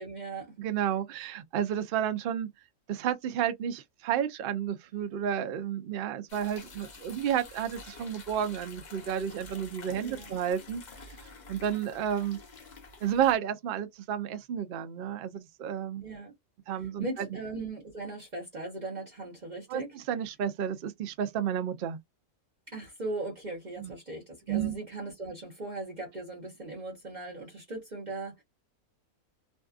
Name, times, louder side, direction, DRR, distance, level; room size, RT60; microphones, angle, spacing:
voice 1, 0.0-0.5 10.0-10.4 16.0-16.3 16.8-19.9 22.7-28.4, right 2 dB, 40° right, 0.9 m, -39 dB
voice 2, 0.6-2.5 2.9-10.8 11.5-12.4 13.0-16.1 16.7-17.3 19.7-19.8 20.1-22.0 23.8-23.9 24.5-24.8, right 9 dB, 65° right, 0.6 m, -31 dB
sound 1, 6.3-13.4, left 3 dB, 40° left, 0.7 m, -49 dB
2.6 x 2.3 x 2.4 m
omnidirectional pair, 1.4 m